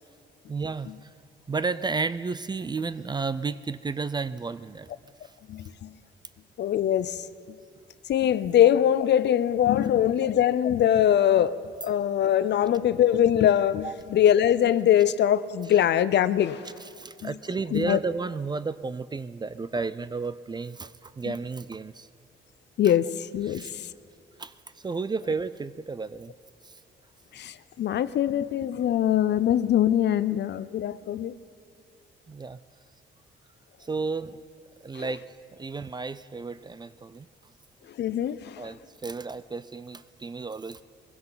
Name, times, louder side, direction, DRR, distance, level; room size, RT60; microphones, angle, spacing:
voice 1, 0.5-1.1 1.5-4.9 5.2-5.3 13.8-13.9 16.8-22.1 22.8-22.9 23.5-23.7 24.4-26.3 26.6-26.8 32.3-32.6 33.8-34.4 34.8-35.2 35.5-37.3 38.6-40.8, right 4 dB, 20° right, 15 dB, 0.4 m, -32 dB
voice 2, 5.5-5.9 6.6-7.2 8.1-11.6 11.8-16.7 17.2-17.3 17.7-18.0 22.8-23.1 23.3-23.9 27.3-31.4 35.0-35.1 38.0-38.7, left 10 dB, 60° left, 15 dB, 0.6 m, -22 dB
22.0 x 16.0 x 4.0 m, 2.6 s
cardioid pair, 90°, 20 cm